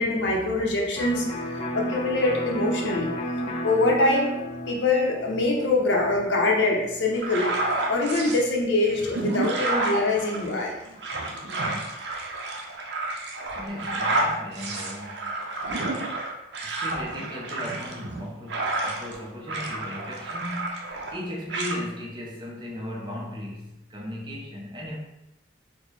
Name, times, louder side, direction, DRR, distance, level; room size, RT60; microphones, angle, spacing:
voice 1, 0.0-3.1 3.6-4.3 4.7-7.5 7.9-10.7, left 2 dB, 80° left, 0 dB, 0.7 m, -24 dB
Electric guitar, 1.0-8.6, equal, 30° left, 0.3 m, -34 dB
sound 1, 7.2-8.4 8.9-19.2 19.5-21.2 21.5-21.8, right 2 dB, 70° right, 0.5 m, -30 dB
voice 2, 13.6-15.5 16.6-25.0, equal, 25° right, -3 dB, 0.6 m, -36 dB
3.9 x 2.1 x 3.1 m, 0.91 s
head